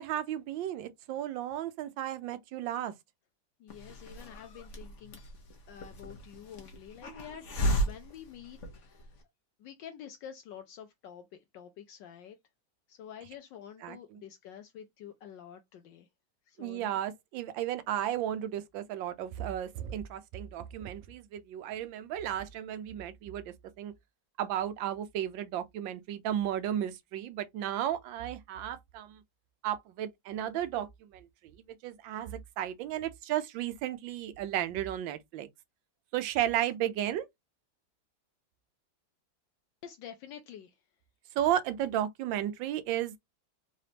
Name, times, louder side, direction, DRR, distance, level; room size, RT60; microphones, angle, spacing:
voice 1, 0.0-2.9 13.8-14.0 16.6-23.9 24.4-29.2 29.6-31.6 31.8-35.5 36.1-37.3 41.4-43.2, right 11 dB, 80° right, 1.4 m, -34 dB
voice 2, 3.6-5.2 5.7-7.5 7.8-9.1 9.6-12.4 12.9-16.1 16.5-16.9 39.8-40.8, left 9 dB, 75° left, 1.2 m, -48 dB
Hiss, 3.7-9.2, equal, 45° left, 1.1 m, -35 dB
4.0 x 3.3 x 2.8 m
omnidirectional pair, 2.1 m